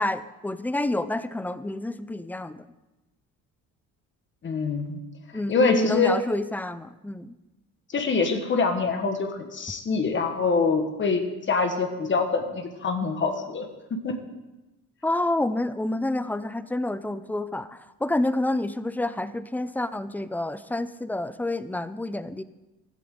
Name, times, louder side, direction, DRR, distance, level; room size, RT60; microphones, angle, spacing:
voice 1, 0.0-2.6 5.3-7.3 15.0-22.4, left 1 dB, 5° left, 14 dB, 0.5 m, -28 dB
voice 2, 4.4-5.0 5.5-6.1 7.9-14.1, left 4 dB, 40° left, 6 dB, 1.5 m, -25 dB
16.0 x 12.0 x 3.8 m, 1.0 s
cardioid pair, 120°, 30 cm